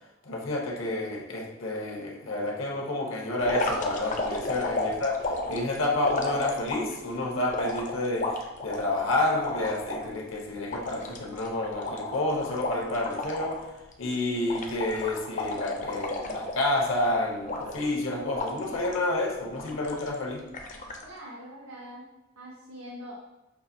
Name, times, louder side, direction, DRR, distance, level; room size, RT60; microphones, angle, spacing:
voice 1, 0.2-5.2 5.5-13.7 14.0-20.4, left 2 dB, 70° left, -1 dB, 0.8 m, -29 dB
sound 1, 3.4-7.0 7.5-10.0 10.4-10.5 10.7-13.6 13.9-14.1 14.5-17.0 17.5-18.0 18.3-19.0 19.5-20.1 20.5-21.0, left 2 dB, 40° left, 0.5 m, -33 dB
voice 2, 21.0-22.1 22.4-23.2, equal, 90° right, -5 dB, 0.8 m, -43 dB
5.6 x 2.5 x 2.6 m, 1.0 s
head